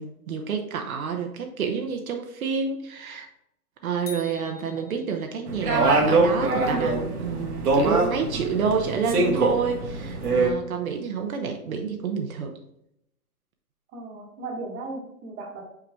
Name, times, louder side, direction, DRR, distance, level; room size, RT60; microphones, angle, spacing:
voice 1, 0.0-3.3 3.8-12.5, right 6 dB, 65° right, 3 dB, 1.0 m, -29 dB
sound 1, 4.1-5.6, left 4 dB, 85° left, 2.0 m, -44 dB
sound 2, 5.5-10.5, right 3 dB, 80° right, 1.7 m, -23 dB
voice 2, 13.9-15.6, right 3 dB, 20° right, -1 dB, 1.3 m, -36 dB
5.8 x 4.7 x 3.5 m, 0.78 s
hypercardioid pair, 135°, 45 cm